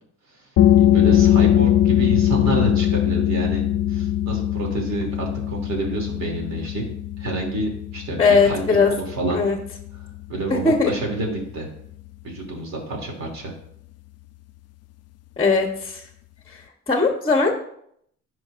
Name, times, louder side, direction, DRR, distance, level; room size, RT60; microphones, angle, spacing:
sound 1, 0.6-11.9, left 12 dB, 55° left, 0.4 m, -21 dB
voice 1, 0.8-3.6 3.9-6.8 7.2-9.4 10.0-11.7 12.2-13.5, right 2 dB, 65° right, 0 dB, 2.8 m, -28 dB
voice 2, 8.2-8.9 9.3-9.6 10.5-10.9 15.4-16.0 16.5-17.5, left 4 dB, 20° left, 3 dB, 1.0 m, -19 dB
13.5 x 4.8 x 2.5 m, 0.70 s
cardioid pair, 90°, 30 cm